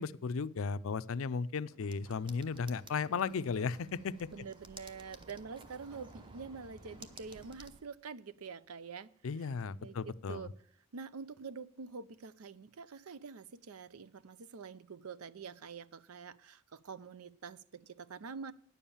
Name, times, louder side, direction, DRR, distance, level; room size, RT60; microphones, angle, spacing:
voice 1, 0.0-4.3 9.2-10.5, left 5 dB, 65° left, 16 dB, 0.4 m, -35 dB
sound 1, 1.7-7.5, right 1 dB, 75° right, 4.7 m, -62 dB
sound 2, 1.8-7.8, right 2 dB, 25° right, 0.8 m, -55 dB
voice 2, 4.3-9.1 9.4-9.5 9.8-10.5 10.9-18.5, right 5 dB, 90° right, 17 dB, 0.6 m, -46 dB
9.8 x 7.2 x 7.0 m, 0.62 s
head